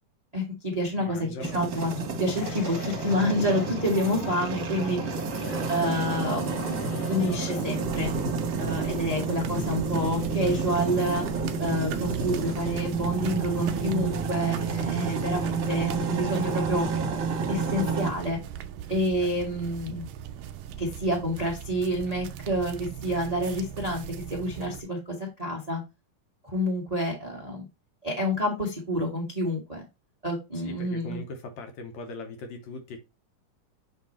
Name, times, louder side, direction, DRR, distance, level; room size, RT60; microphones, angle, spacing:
voice 1, 0.3-1.9 2.2-5.0 5.7-8.1 8.6-11.2 11.6-16.9 17.5-18.4 18.9-20.1 20.8-25.8 26.4-27.7 28.0-29.8 30.2-31.2, equal, 35° right, 0.6 m, -28 dB
voice 2, 1.0-1.9 5.4-5.7 19.2-19.4 30.5-33.0, left 3 dB, 70° left, 2.0 m, -40 dB
sound 1, 1.4-18.1, right 4 dB, 60° right, 2.0 m, -30 dB
sound 2, 2.3-7.7, left 8 dB, 90° left, 2.4 m, -41 dB
sound 3, 7.8-24.8, right 9 dB, 85° right, 1.6 m, -39 dB
7.7 x 2.9 x 4.3 m
omnidirectional pair, 3.7 m